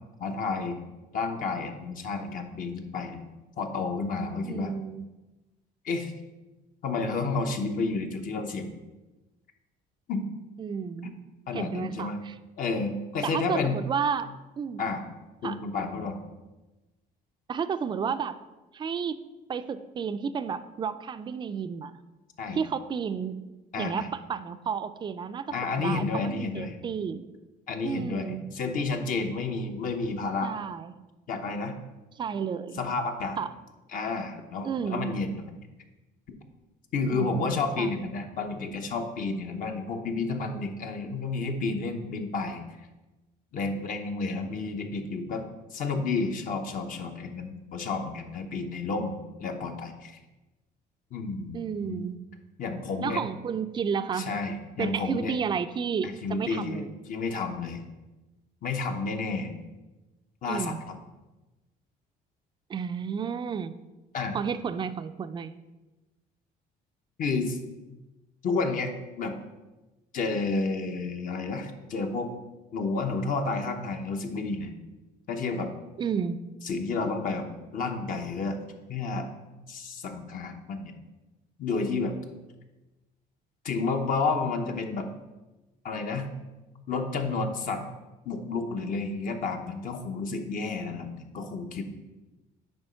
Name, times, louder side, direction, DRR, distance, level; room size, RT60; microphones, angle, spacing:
voice 1, 0.2-0.8 1.1-3.3 3.6-4.7 5.8-6.1 6.8-8.7 10.1-10.2 11.0-11.1 11.5-12.2 12.6-13.8 14.8-15.0 15.4-16.2 22.4-22.6 23.7-24.1 25.5-26.8 27.7-30.5 31.3-31.7 32.8-33.4 33.9-35.4 36.9-42.6 43.5-45.4 45.7-50.2 51.1-52.0 52.6-53.2 54.1-55.3 56.0-57.8 58.6-59.5 60.4-61.0 64.1-64.4 67.2-67.6 68.4-68.9 69.2-69.3 70.1-72.3 72.7-74.7 75.3-75.7 76.6-77.5 77.7-78.6 78.9-79.3 79.7-80.9 81.6-82.1 83.6-85.1 85.8-86.3 86.9-87.8 88.2-91.8, left 4 dB, 55° left, 5 dB, 0.9 m, -31 dB
voice 2, 4.4-5.0 10.6-11.1 11.5-12.4 13.2-14.8 15.4-15.6 17.5-18.4 18.7-19.2 19.5-22.0 22.5-23.5 23.8-27.3 27.8-28.4 30.4-30.9 32.2-32.8 33.4-33.5 34.6-35.1 37.1-37.9 51.5-52.2 53.0-54.3 54.8-56.9 60.5-60.8 62.7-63.7 64.3-65.5 76.0-76.4, right 6 dB, 25° right, 11 dB, 0.4 m, -32 dB
8.9 x 3.1 x 5.6 m, 1.1 s
cardioid pair, 110°, 17 cm